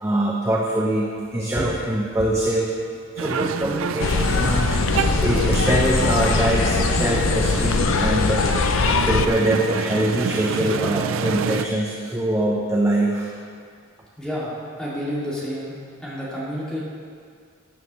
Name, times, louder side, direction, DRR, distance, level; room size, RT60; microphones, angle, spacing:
voice 1, 0.0-2.7 3.1-8.4 9.1-13.3, right 1 dB, 15° right, -3 dB, 0.8 m, -23 dB
sound 1, 1.2-8.3, equal, 30° left, 1.0 m, -38 dB
sound 2, 3.2-11.7, right 6 dB, 80° right, 0.4 m, -28 dB
sound 3, 4.0-9.3, left 4 dB, 80° left, 0.5 m, -21 dB
voice 2, 14.2-15.7 16.0-16.8, equal, 5° left, -9 dB, 2.4 m, -29 dB
14.5 x 9.2 x 3.2 m, 2.1 s
head